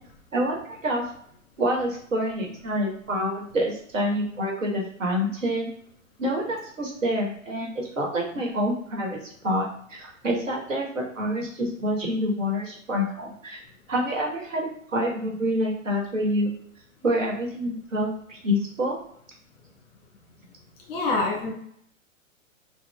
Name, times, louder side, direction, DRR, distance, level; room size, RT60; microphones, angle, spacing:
voice 1, 0.3-1.0 1.6-5.7 6.2-13.6 13.9-16.5 17.0-19.0, equal, 70° right, -1 dB, 1.2 m, -27 dB
voice 2, 20.9-21.5, left 3 dB, 25° left, -2 dB, 1.3 m, -25 dB
5.9 x 2.3 x 2.3 m, 0.66 s
figure-of-eight pair, 115°, 40 cm